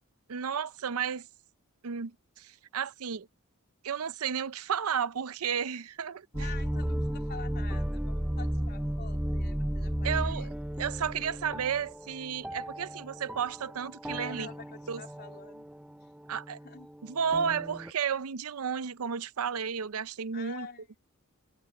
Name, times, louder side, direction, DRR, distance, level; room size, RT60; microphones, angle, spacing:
voice 1, 0.3-1.3 1.8-3.3 3.8-6.3 10.0-10.5 10.8-14.5 14.9-15.0 16.3-16.6 17.0-20.7, right 7 dB, 90° right, 0.6 m, -32 dB
voice 2, 6.3-10.5 14.1-15.7 16.6-16.9 20.3-21.0, left 5 dB, 50° left, 3.7 m, -47 dB
sound 1, 6.3-17.9, equal, 5° right, 0.5 m, -34 dB
head